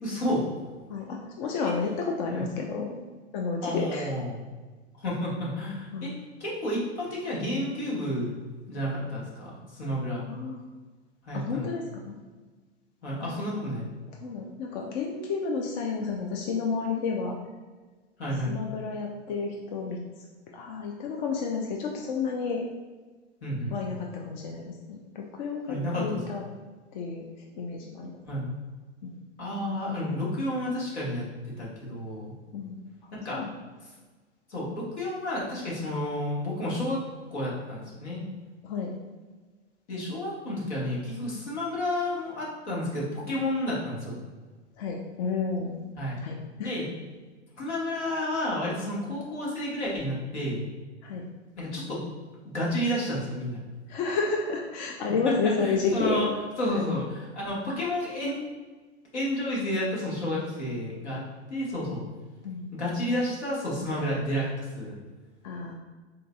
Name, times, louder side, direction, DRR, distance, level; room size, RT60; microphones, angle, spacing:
voice 1, 0.0-0.4 1.6-1.7 2.3-2.4 3.6-4.4 5.0-6.1 6.4-8.3 8.7-10.2 11.2-11.7 13.0-13.8 18.2-18.5 23.4-23.7 25.7-26.2 28.2-28.5 29.4-31.3 31.6-32.3 33.2-33.4 34.5-37.0 37.3-38.2 39.9-44.1 46.0-46.2 46.6-46.9 47.6-50.6 51.6-52.0 52.4-53.6 55.2-56.3 56.6-58.4 59.1-61.2 61.5-62.0 62.7-64.9, left 1 dB, 70° left, -5 dB, 1.5 m, -31 dB
voice 2, 0.9-3.0 3.3-4.1 5.9-6.1 10.3-10.6 11.3-12.1 13.2-13.4 14.2-17.3 18.5-20.0 20.5-22.6 23.7-26.4 26.9-27.3 27.5-28.1 29.0-29.2 32.5-32.8 33.3-33.5 38.6-38.9 44.8-45.8 46.2-46.8 51.0-51.2 53.9-56.2 56.6-56.8 62.4-62.6 65.4-65.7, left 4 dB, 40° left, 0 dB, 0.5 m, -31 dB
3.8 x 3.8 x 2.3 m, 1.3 s
figure-of-eight pair, 95°, 35 cm